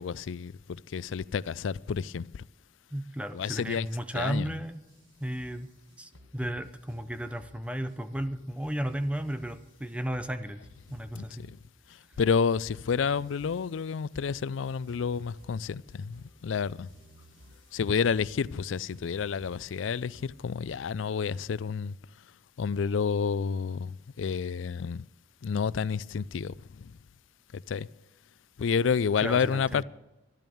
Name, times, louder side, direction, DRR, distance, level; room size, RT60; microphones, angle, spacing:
voice 1, 0.0-2.4 3.3-3.9 4.1-4.5 11.2-11.6 12.2-16.9 17.7-21.9 22.6-25.0 25.4-26.9 27.5-27.9 28.6-29.8, left 6 dB, 85° left, 0.4 m, -30 dB
voice 2, 2.9-4.8 5.2-5.7 6.0-10.6 10.9-11.5 29.2-29.8, equal, 5° right, 0.7 m, -34 dB
sound 1, 3.2-20.6, right 1 dB, 70° right, 6.2 m, -57 dB
12.5 x 12.5 x 7.1 m
head